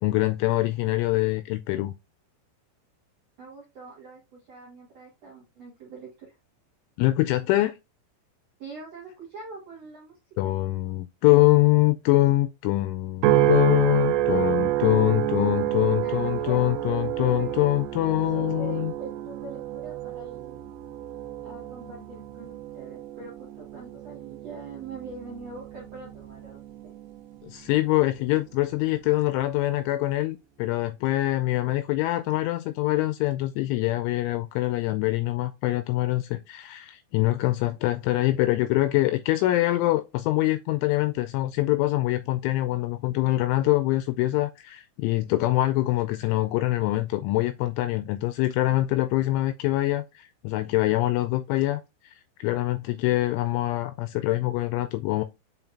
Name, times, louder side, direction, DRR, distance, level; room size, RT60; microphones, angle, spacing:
voice 1, 0.0-1.9 7.0-7.8 10.4-18.9 27.4-52.1 52.4-55.2, left 17 dB, 85° left, 2.8 m, -24 dB
voice 2, 3.4-6.3 8.6-10.5 16.0-17.7 18.3-20.6 21.4-26.9, right 3 dB, 65° right, 1.6 m, -43 dB
sound 1, 13.2-27.7 28.2-28.7, right 13 dB, 80° right, 3.2 m, -29 dB
7.8 x 4.4 x 2.8 m
omnidirectional pair, 5.9 m